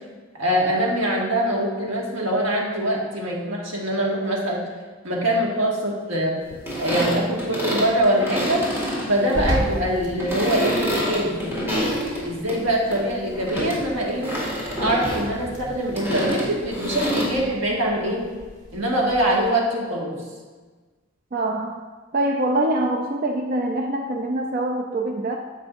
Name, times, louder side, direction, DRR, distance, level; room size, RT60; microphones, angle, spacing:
voice 1, 0.3-4.6 5.0-6.4 6.8-8.6 9.1-11.5 12.2-14.3 14.8-18.3 18.7-20.1, right 1 dB, 90° right, -3 dB, 1.8 m, -23 dB
sound 1, 6.5-12.6 12.9-17.2, equal, 10° right, 2.0 m, -27 dB
sound 2, 9.3-19.5, equal, 70° right, 2.6 m, -37 dB
voice 2, 21.3-21.8 22.1-25.4, right 1 dB, 45° right, 2 dB, 0.5 m, -24 dB
9.4 x 7.7 x 2.6 m, 1.4 s
head